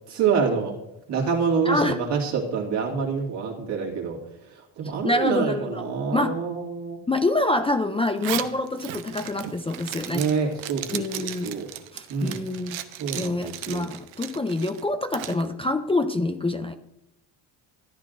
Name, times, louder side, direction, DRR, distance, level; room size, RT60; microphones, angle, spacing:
voice 1, 0.1-0.8 1.1-4.2 4.8-7.0 10.1-11.7 12.1-12.4 13.0-13.9, right 5 dB, 65° right, -1 dB, 2.6 m, -26 dB
voice 2, 1.7-2.0 4.8-6.4 7.1-10.2 10.9-11.6 11.9-12.8 13.2-16.7, left 2 dB, 15° left, 6 dB, 0.4 m, -26 dB
Zipper (clothing), 8.1-15.4, right 12 dB, 85° right, 0.7 m, -36 dB
13.5 x 9.7 x 2.6 m, 0.89 s
cardioid pair, 95°, 45 cm